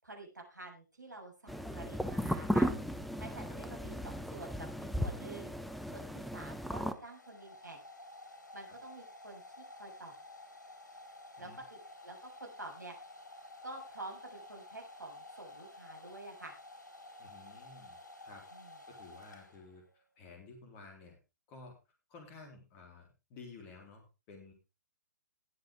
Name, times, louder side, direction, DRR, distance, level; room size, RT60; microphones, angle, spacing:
voice 1, 0.0-2.7 3.2-4.7 5.0-5.5 5.9-7.8 8.5-10.1 11.4-13.0 13.6-16.6 18.5-18.8, right 2 dB, 80° right, 3 dB, 7.0 m, -48 dB
sound 1, 1.5-6.9, equal, ahead, 0.9 m, -35 dB
Domestic sounds home sounds, 6.2-19.9, left 2 dB, 80° left, 5.1 m, -52 dB
voice 2, 17.2-18.0 18.2-18.4 18.9-21.2 21.5-21.8 22.1-24.5, left 3 dB, 30° left, 2 dB, 3.8 m, -53 dB
19.5 x 8.0 x 3.6 m, 0.28 s
figure-of-eight pair, 125°, 10 cm